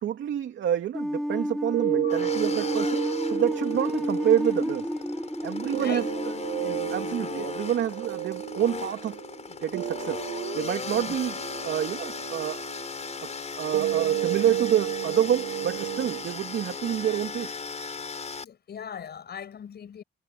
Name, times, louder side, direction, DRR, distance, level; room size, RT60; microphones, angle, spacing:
voice 1, 0.0-4.9 5.4-6.3 6.9-9.2 9.6-10.2 10.5-12.7 13.6-17.6, right 10 dB, 70° right, 2.6 m, -28 dB
sound 1, 0.9-7.8, equal, ahead, 3.5 m, -31 dB
sound 2, 1.7-17.7, right 14 dB, 85° right, 7.7 m, -33 dB
sound 3, 2.1-18.4, left 5 dB, 35° left, 5.6 m, -37 dB
voice 2, 6.6-7.4 10.9-11.1 18.4-20.0, left 8 dB, 55° left, 6.4 m, -40 dB
cardioid pair, 90°, 20 cm